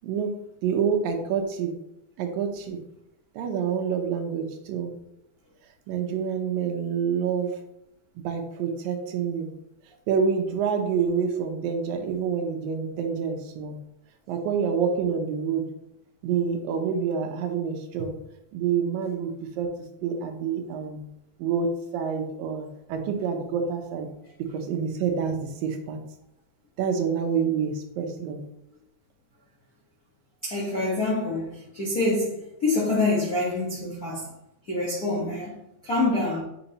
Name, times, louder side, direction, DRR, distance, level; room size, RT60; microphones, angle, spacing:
voice 1, 0.6-1.7 2.2-2.8 3.3-4.9 5.9-7.6 8.2-9.5 10.1-13.8 14.3-15.6 16.2-18.2 18.5-19.7 20.0-21.1 21.4-24.1 24.4-26.0 26.8-28.4, right 6 dB, 80° right, 2.5 m, -27 dB
voice 2, 30.4-34.3 34.7-36.4, left 2 dB, 80° left, 0.8 m, -26 dB
7.9 x 5.4 x 2.9 m
omnidirectional pair, 4.1 m